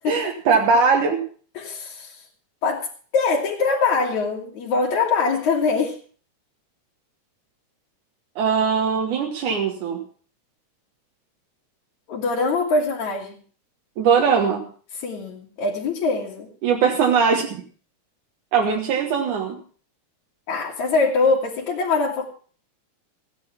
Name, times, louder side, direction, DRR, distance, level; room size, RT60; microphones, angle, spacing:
voice 1, 0.1-1.2 8.4-10.0 14.0-14.6 16.6-17.6 18.5-19.6, right 6 dB, 80° right, 2 dB, 2.9 m, -20 dB
voice 2, 1.5-2.2 2.6-2.9 3.1-6.0 12.1-13.3 15.0-16.5 20.5-22.3, left 4 dB, 70° left, -3 dB, 3.3 m, -23 dB
15.5 x 10.5 x 5.8 m, 0.42 s
omnidirectional pair, 3.5 m